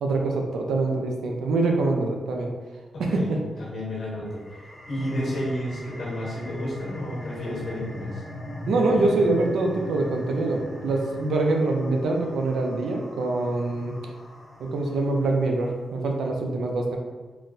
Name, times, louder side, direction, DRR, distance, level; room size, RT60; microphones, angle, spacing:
voice 1, 0.0-2.5 3.0-3.4 5.1-5.3 8.7-13.9 14.6-17.0, right 2 dB, 90° right, 1 dB, 0.4 m, -24 dB
voice 2, 2.9-8.2, equal, 75° left, -6 dB, 1.3 m, -32 dB
sound 1, 4.3-15.4, left 1 dB, 25° left, 0.8 m, -38 dB
4.0 x 2.0 x 2.5 m, 1.3 s
cardioid pair, 80°, 0 cm